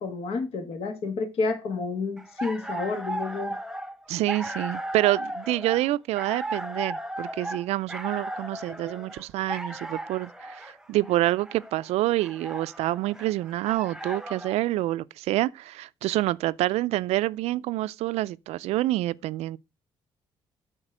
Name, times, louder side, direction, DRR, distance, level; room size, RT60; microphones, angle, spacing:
voice 1, 0.0-3.6, left 4 dB, 70° left, 1.9 m, -30 dB
sound 1, 2.2-14.6, right 1 dB, 5° right, 0.8 m, -36 dB
voice 2, 4.1-19.6, right 16 dB, 85° right, 0.4 m, -27 dB
8.9 x 4.4 x 6.1 m
cardioid pair, 120°, 11 cm